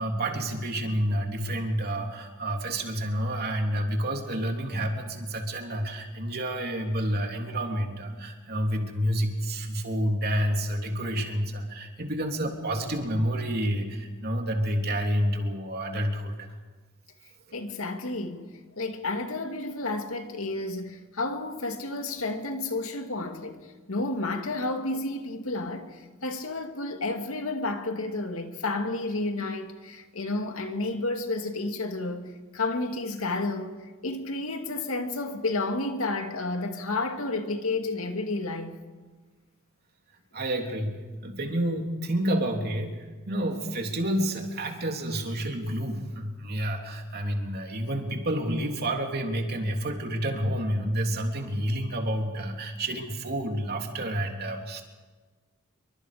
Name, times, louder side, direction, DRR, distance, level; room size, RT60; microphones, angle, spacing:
voice 1, 0.0-16.6 40.3-40.9 41.2-54.8, right 1 dB, 50° right, 3.2 m, -29 dB
voice 2, 17.5-18.5 18.8-38.8, left 2 dB, 85° left, 2.3 m, -31 dB
27.0 x 24.0 x 5.1 m
head